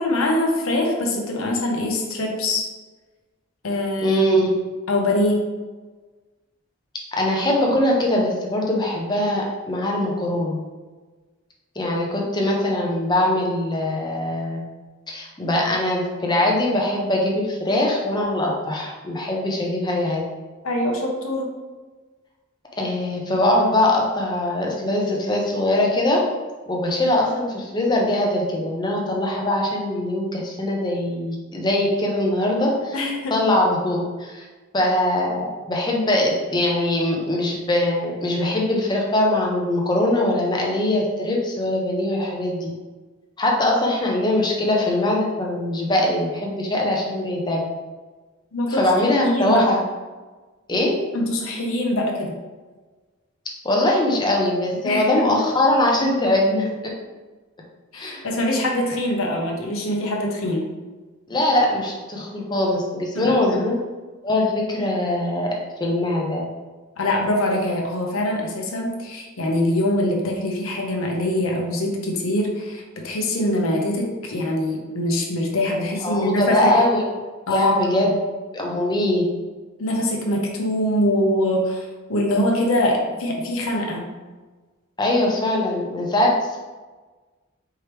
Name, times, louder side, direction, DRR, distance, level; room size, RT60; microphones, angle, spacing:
voice 1, 0.0-2.7 3.6-4.2 4.9-5.4 20.6-21.5 32.9-33.4 48.5-48.8 49.2-49.6 51.1-52.3 54.8-55.3 57.9-60.6 63.1-63.3 67.0-76.7 77.5-78.1 79.8-84.1, left 1 dB, 90° left, 0 dB, 0.8 m, -23 dB
voice 2, 4.0-4.5 7.1-10.6 11.8-14.6 15.1-20.3 22.8-26.2 26.7-32.9 33.3-34.4 34.7-42.7 43.4-47.6 48.7-49.8 50.7-50.9 53.6-56.9 57.9-58.3 61.3-64.0 64.2-65.5 65.8-66.4 76.0-77.0 77.5-78.1 78.5-79.3 85.0-86.6, left 1 dB, 20° left, -1 dB, 0.7 m, -22 dB
4.7 x 3.0 x 3.3 m, 1.3 s
head